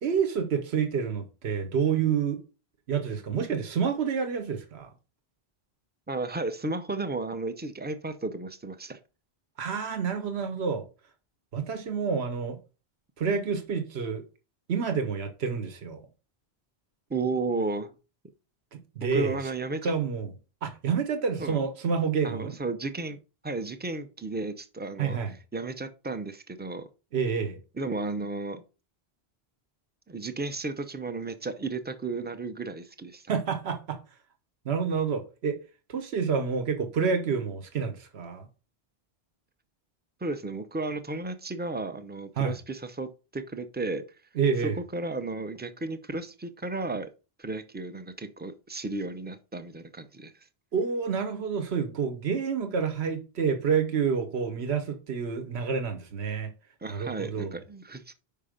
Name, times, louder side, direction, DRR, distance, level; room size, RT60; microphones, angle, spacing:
voice 1, 0.0-2.4 2.9-4.9 9.6-10.8 11.5-12.6 13.2-14.2 14.7-16.0 18.7-19.4 19.8-20.3 20.6-22.6 25.0-25.3 27.1-27.6 33.3-34.0 34.6-35.6 35.9-38.5 42.4-42.5 44.3-44.8 50.7-56.5 56.9-57.6, right 6 dB, 80° right, 1.3 m, -28 dB
voice 2, 6.1-9.0 17.1-17.9 19.1-19.9 21.4-21.6 22.2-23.2 23.4-26.9 27.8-28.6 30.1-33.3 40.2-44.0 44.9-47.1 47.4-50.3 56.8-58.1, right 3 dB, 15° right, 0.4 m, -34 dB
5.6 x 5.2 x 5.0 m
omnidirectional pair, 1.1 m